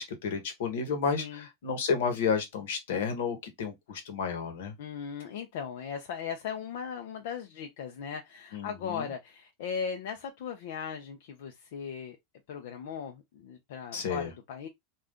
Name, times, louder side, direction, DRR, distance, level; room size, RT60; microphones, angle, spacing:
voice 1, 0.0-4.7 8.5-9.1 13.9-14.3, left 5 dB, 80° left, 1.0 m, -31 dB
voice 2, 1.1-1.5 4.8-12.2 12.5-14.7, left 7 dB, 65° left, 0.5 m, -38 dB
2.6 x 2.3 x 3.5 m
supercardioid pair, 175°, 0 cm